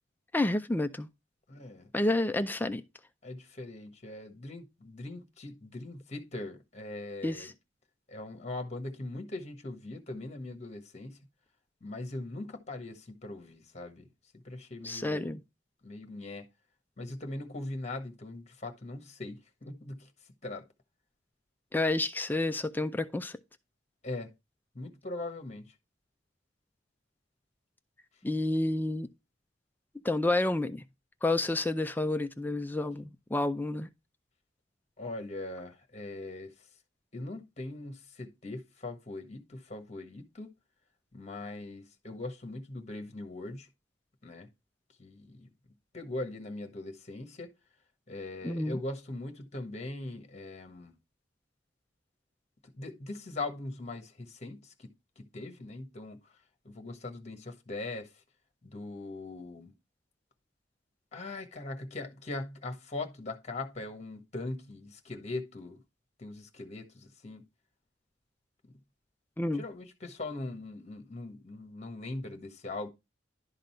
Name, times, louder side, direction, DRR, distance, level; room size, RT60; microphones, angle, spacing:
voice 1, 0.3-1.1 1.9-2.8 7.2-7.5 14.8-15.4 21.7-23.4 28.2-29.1 30.0-30.8 31.2-33.9 48.4-48.8 69.4-69.6, left 2 dB, 10° left, 0.4 m, -29 dB
voice 2, 1.5-2.2 3.2-7.5 8.1-11.2 11.8-14.1 14.3-15.4 15.8-16.4 17.0-20.1 20.4-20.7 24.0-24.3 24.7-25.7 35.0-36.7 37.1-40.5 41.1-43.7 44.2-44.5 45.0-45.5 45.9-47.5 48.1-50.9 52.6-54.9 55.2-56.4 56.6-58.2 58.6-59.7 61.1-65.8 66.2-67.4 69.5-72.9, left 2 dB, 35° left, 1.4 m, -41 dB
11.5 x 3.9 x 4.4 m
head